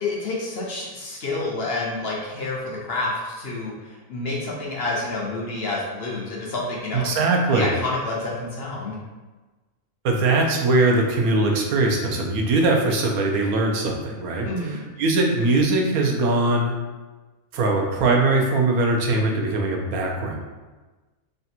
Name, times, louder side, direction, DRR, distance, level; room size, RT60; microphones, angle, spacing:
voice 1, 0.0-7.1 7.5-8.9 14.4-14.8, left 2 dB, 55° left, -4 dB, 0.8 m, -29 dB
voice 2, 6.9-7.7 10.0-16.7 17.5-20.4, right 2 dB, 85° right, 1 dB, 1.1 m, -21 dB
3.3 x 2.7 x 4.2 m, 1.2 s
omnidirectional pair, 1.5 m